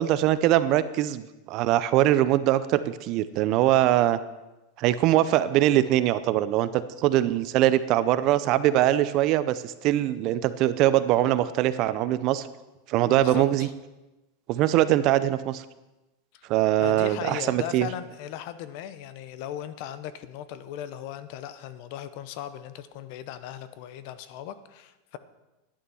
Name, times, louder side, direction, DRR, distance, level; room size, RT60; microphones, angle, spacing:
voice 1, 0.0-4.2 4.8-12.5 12.9-13.7 14.5-15.6 16.5-17.9, right 13 dB, 40° right, 14 dB, 0.6 m, -22 dB
voice 2, 13.1-13.7 16.3-16.5 16.8-25.2, left 11 dB, 55° left, 13 dB, 0.9 m, -38 dB
11.5 x 8.6 x 7.0 m, 1.0 s
supercardioid pair, 155°, 0 cm